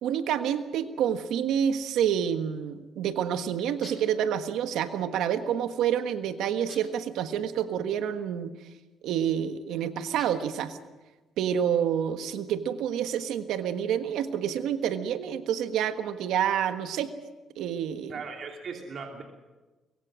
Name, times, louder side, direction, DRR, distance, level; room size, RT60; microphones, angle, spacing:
voice 1, 0.0-8.5 9.0-10.8 11.4-17.1 17.6-18.2, right 9 dB, 85° right, 9 dB, 1.4 m, -28 dB
sound 1, 3.8-4.3 6.7-7.1 10.2-10.6, left 3 dB, 30° left, 3.8 m, -49 dB
voice 2, 18.1-19.2, right 5 dB, 55° right, 2 dB, 2.9 m, -38 dB
24.0 x 22.0 x 6.3 m, 1.2 s
cardioid pair, 90°, 0 cm